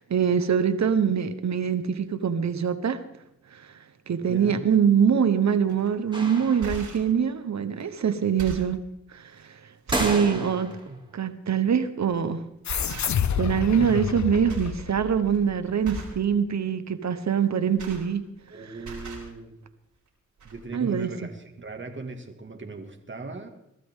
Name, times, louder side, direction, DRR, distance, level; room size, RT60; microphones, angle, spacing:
voice 1, 0.0-3.0 3.5-3.6 4.1-8.8 9.1-9.6 9.9-10.7 11.1-12.4 13.3-18.2 20.7-21.1, right 7 dB, 65° right, 11 dB, 1.2 m, -24 dB
voice 2, 4.2-4.7 10.1-11.0 18.5-19.6 20.4-23.5, right 3 dB, 40° right, 4 dB, 2.2 m, -39 dB
sound 1, 5.7-5.9 6.4-7.1 7.8-7.9 8.2-8.8 9.4-9.5 9.9-10.3 10.7-10.8 12.0-12.2 12.7-13.4 13.7-14.2 14.5-14.8 15.1-15.4 15.8-16.2 17.4-18.5 18.8-19.3 20.1-20.2 20.4-20.5, right 2 dB, 85° right, 4.4 m, -38 dB
sound 2, 6.1-7.1 9.9-10.9, right 1 dB, 15° right, 2.7 m, -31 dB
sound 3, 12.6-15.7, left 8 dB, 70° left, 0.8 m, -29 dB
22.0 x 12.5 x 3.7 m, 0.79 s
cardioid pair, 50°, 29 cm